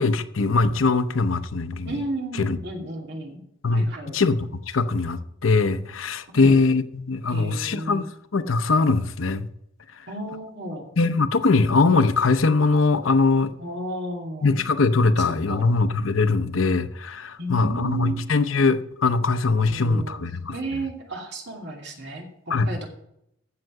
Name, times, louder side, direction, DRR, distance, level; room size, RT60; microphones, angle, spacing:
voice 1, 0.0-1.9 2.4-2.6 3.6-9.5 11.0-13.5 14.4-20.5 22.5-22.7, left 3 dB, 90° left, 0.8 m, -21 dB
voice 2, 1.8-3.4 3.7-4.2 6.3-6.6 7.3-8.1 10.1-10.9 13.6-14.6 15.5-15.7 17.4-18.2 19.6-22.9, right 2 dB, 60° right, 2.6 m, -33 dB
16.0 x 6.6 x 4.7 m
head